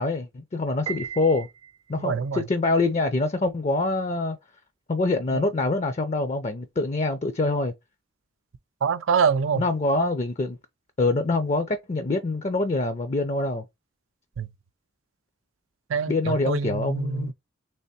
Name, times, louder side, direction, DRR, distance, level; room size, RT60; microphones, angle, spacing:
voice 1, 0.0-1.5 1.9-4.4 4.9-7.7 9.6-10.6 11.0-13.6 16.1-17.3, left 2 dB, 35° left, 0.5 m, -25 dB
Piano, 0.9-2.2, right 8 dB, 25° right, 0.4 m, -37 dB
voice 2, 2.0-2.4 5.3-5.5 8.8-9.6 14.4-14.5 15.9-17.3, right 6 dB, 85° right, 0.5 m, -25 dB
3.4 x 3.3 x 4.1 m
head